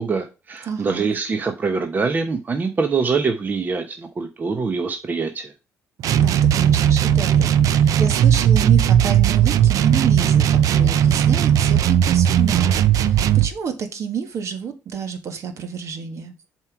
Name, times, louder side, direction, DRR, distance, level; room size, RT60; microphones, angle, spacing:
voice 1, 0.0-5.5, right 4 dB, 30° right, 6 dB, 0.9 m, -24 dB
voice 2, 0.7-1.1 6.1-16.3, right 6 dB, 55° right, 8 dB, 1.6 m, -29 dB
sound 1, 6.0-13.5, right 9 dB, 70° right, 0.6 m, -17 dB
7.5 x 4.6 x 4.6 m, 0.30 s
cardioid pair, 120°, 6 cm